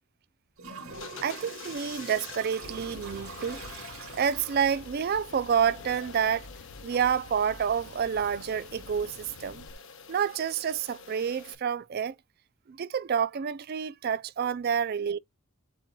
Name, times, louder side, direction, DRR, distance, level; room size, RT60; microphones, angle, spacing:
Toilet flush, 0.6-4.9, right 4 dB, 70° right, 2.9 m, -44 dB
sound 1, 0.9-11.5, left 5 dB, 60° left, 1.2 m, -47 dB
voice 1, 1.2-3.6 4.2-6.5 6.8-9.6 10.1-12.1 12.7-15.2, right 7 dB, 45° right, 0.3 m, -28 dB
sound 2, 2.6-9.8, left 4 dB, 90° left, 0.6 m, -49 dB
7.6 x 2.9 x 2.2 m
head